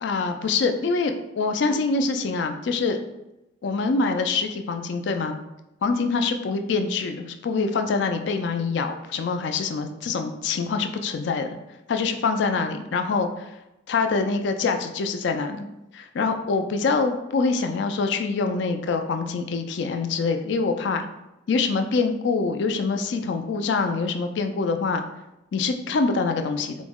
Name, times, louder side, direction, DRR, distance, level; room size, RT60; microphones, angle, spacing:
voice 1, 0.0-3.0 3.6-5.4 5.8-11.6 11.9-13.5 13.9-15.7 15.9-21.1 21.5-25.0 25.5-26.8, left 4 dB, 60° left, 6 dB, 0.3 m, -25 dB
3.8 x 2.0 x 3.5 m, 0.92 s
head